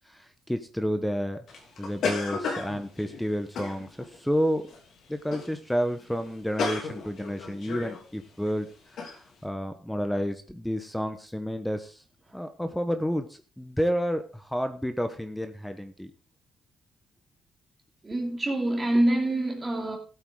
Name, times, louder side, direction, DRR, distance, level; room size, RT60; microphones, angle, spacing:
voice 1, 0.1-1.4 1.8-4.7 5.1-12.0 12.3-16.1, equal, 5° left, 1.0 m, -30 dB
sound 1, 1.5-4.2 4.7-4.9 5.3-5.6 5.8-5.9 6.2-8.0 8.5-8.6 9.0-9.2, left 4 dB, 65° left, 3.1 m, -33 dB
voice 2, 18.0-20.0, right 1 dB, 25° right, 2.7 m, -25 dB
14.0 x 8.1 x 3.8 m
cardioid pair, 90°, 0 cm